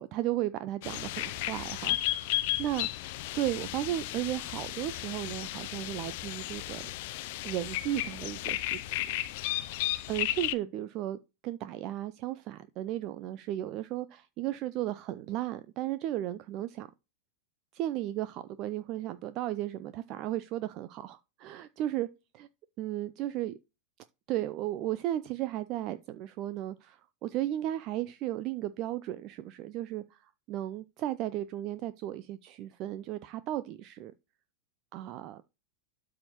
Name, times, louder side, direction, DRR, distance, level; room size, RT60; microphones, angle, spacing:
voice 1, 0.0-3.0 3.3-6.8 7.4-9.8 10.1-16.9 17.7-22.1 22.3-22.5 22.8-23.6 24.3-30.2 30.5-34.1 34.9-35.4, right 13 dB, 40° right, 0.5 m, -35 dB
sound 1, 0.8-10.6, left 16 dB, 50° left, 0.6 m, -34 dB
12.5 x 4.7 x 3.0 m
figure-of-eight pair, 90°, 0 cm